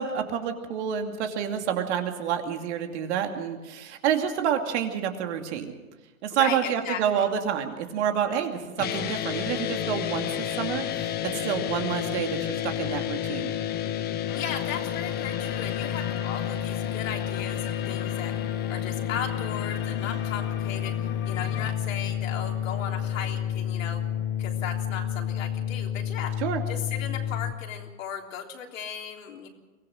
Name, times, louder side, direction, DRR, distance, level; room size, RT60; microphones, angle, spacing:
voice 1, 0.0-5.7 6.2-11.1 11.4-13.6 26.4-26.6, right 8 dB, 50° right, 5 dB, 2.6 m, -28 dB
voice 2, 6.4-7.0 14.3-18.4 18.7-21.0 21.3-24.1 24.4-29.5, left 8 dB, 65° left, 1 dB, 3.6 m, -36 dB
sound 1, 8.8-27.5, left 10 dB, 20° left, 1.2 m, -30 dB
sound 2, 14.3-21.7, left 10 dB, 40° left, 2.3 m, -41 dB
23.5 x 17.0 x 6.5 m, 1.2 s
hypercardioid pair, 130°, 42 cm